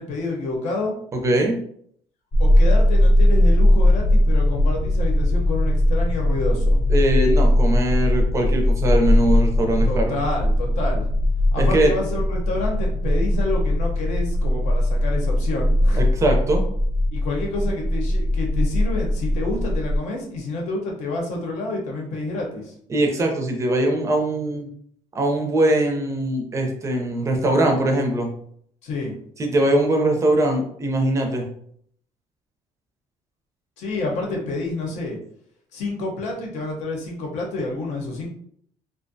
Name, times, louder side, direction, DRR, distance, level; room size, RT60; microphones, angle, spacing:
voice 1, 0.0-1.0 2.4-6.8 9.9-11.1 11.5-16.0 17.1-22.7 28.8-29.2 33.8-35.2 35.7-38.3, left 2 dB, 75° left, 0 dB, 0.8 m, -28 dB
voice 2, 1.1-1.6 6.9-10.1 11.6-11.9 16.0-16.6 22.9-24.7 25.1-28.3 29.4-31.5, right 1 dB, 25° right, 2 dB, 0.5 m, -21 dB
sound 1, 2.3-20.0, left 1 dB, 35° left, 0.5 m, -19 dB
2.4 x 2.1 x 2.6 m, 0.65 s
cardioid pair, 145°, 12 cm